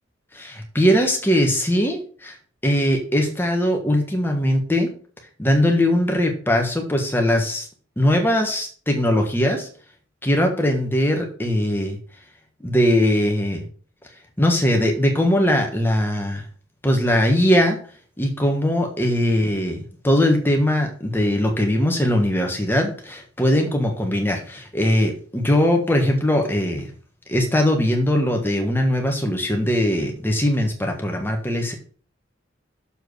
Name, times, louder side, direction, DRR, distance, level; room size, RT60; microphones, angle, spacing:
voice 1, 0.3-2.4 2.6-4.9 5.4-7.7 8.0-9.7 10.2-12.0 12.6-13.6 14.4-16.4 16.8-17.8 18.2-26.9 27.3-31.7, left 1 dB, 10° left, 2 dB, 1.4 m, -20 dB
7.0 x 4.6 x 6.3 m, 0.43 s
head